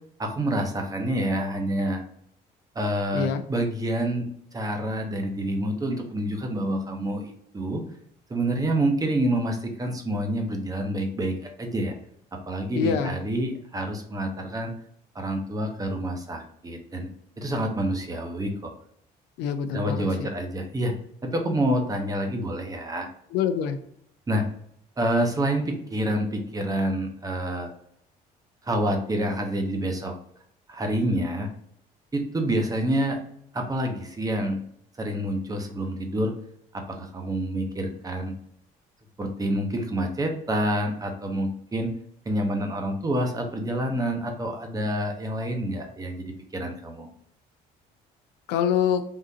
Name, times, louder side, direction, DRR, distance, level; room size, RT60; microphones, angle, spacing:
voice 1, 0.2-2.0 2.7-4.2 4.5-7.8 8.3-11.9 12.3-14.7 15.1-17.1 17.4-18.7 19.7-20.9 21.2-23.1 24.3-24.4 25.0-27.7 28.6-30.1 30.7-31.5 32.1-33.2 33.5-34.6 35.0-36.3 36.7-38.3 39.2-41.9 42.3-47.1, right 1 dB, 20° right, 4 dB, 0.8 m, -27 dB
voice 2, 12.7-13.1 19.4-20.3 23.3-23.8 48.5-49.0, left 7 dB, 90° left, 8 dB, 0.5 m, -25 dB
3.6 x 2.5 x 2.7 m, 0.70 s
cardioid pair, 110°, 17 cm